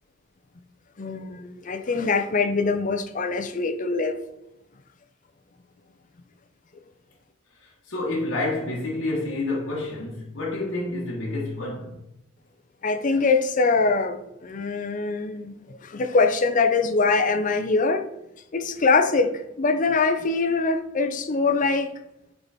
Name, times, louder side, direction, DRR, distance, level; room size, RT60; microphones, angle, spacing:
voice 1, 1.0-4.2 12.8-18.0 18.5-19.3 19.6-21.9, left 4 dB, 40° left, 0.6 m, -23 dB
voice 2, 7.6-12.0, left 2 dB, 65° left, 1.2 m, -29 dB
5.5 x 4.6 x 4.2 m
head